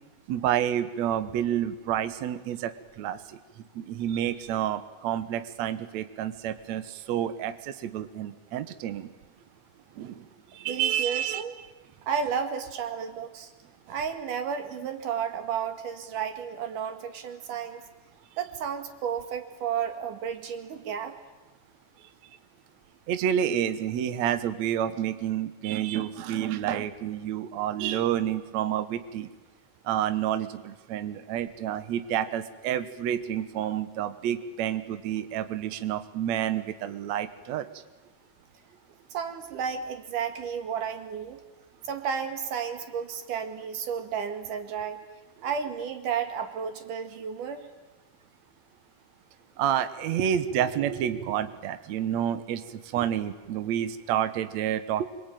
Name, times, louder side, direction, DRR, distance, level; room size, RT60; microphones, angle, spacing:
voice 1, 0.3-2.7 3.0-3.4 3.7-9.1 10.0-10.3 10.5-11.4 23.1-29.3 29.8-37.6 49.6-55.1, right 10 dB, 90° right, 12 dB, 1.5 m, -29 dB
voice 2, 10.7-11.6 12.0-13.5 13.9-17.8 18.4-21.1 39.1-41.4 41.8-45.0 45.4-47.7, right 7 dB, 55° right, 7 dB, 3.1 m, -32 dB
26.0 x 23.5 x 9.1 m, 1.2 s
omnidirectional pair, 4.8 m